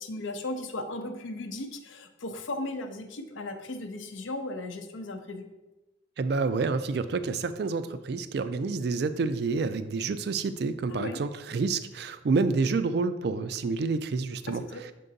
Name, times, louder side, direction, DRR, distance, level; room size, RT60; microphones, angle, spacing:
voice 1, 0.0-5.5 10.9-11.2 14.5-14.8, left 2 dB, 85° left, 7 dB, 0.7 m, -36 dB
voice 2, 6.2-14.6, right 4 dB, 55° right, 12 dB, 0.3 m, -28 dB
6.6 x 3.7 x 3.9 m, 1.1 s
head